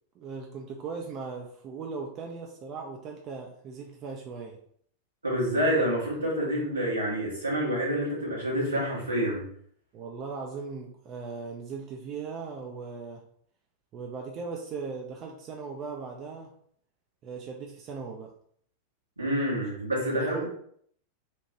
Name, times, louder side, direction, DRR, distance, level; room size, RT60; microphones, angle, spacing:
voice 1, 0.2-4.6 9.9-13.2 13.9-16.5 17.2-18.3 20.1-20.5, right 5 dB, 35° right, 1 dB, 0.4 m, -38 dB
voice 2, 5.2-9.5 19.2-20.5, equal, 80° right, -5 dB, 1.2 m, -28 dB
2.8 x 2.1 x 2.9 m, 0.63 s
figure-of-eight pair, 90°, 0 cm